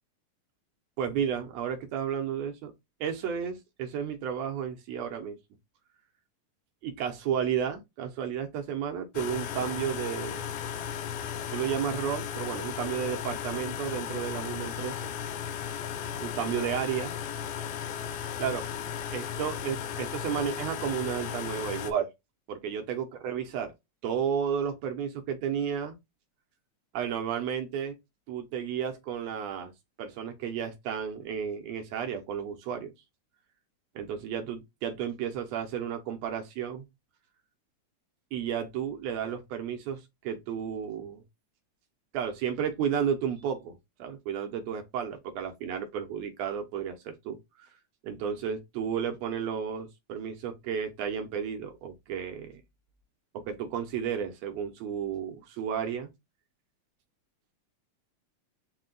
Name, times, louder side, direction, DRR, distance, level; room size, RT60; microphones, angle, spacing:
voice 1, 1.0-2.7 3.0-5.4 6.8-10.5 11.5-15.1 16.2-17.2 18.4-18.7 19.0-22.1 22.5-23.7 24.0-26.0 26.9-28.0 28.3-29.7 30.0-32.9 34.0-36.9 38.3-41.2 42.1-47.7 48.0-52.6 53.3-56.1, right 8 dB, 75° right, 1.6 m, -32 dB
sound 1, 9.1-21.9, left 8 dB, 85° left, 2.2 m, -35 dB
5.1 x 2.1 x 3.8 m
omnidirectional pair, 3.6 m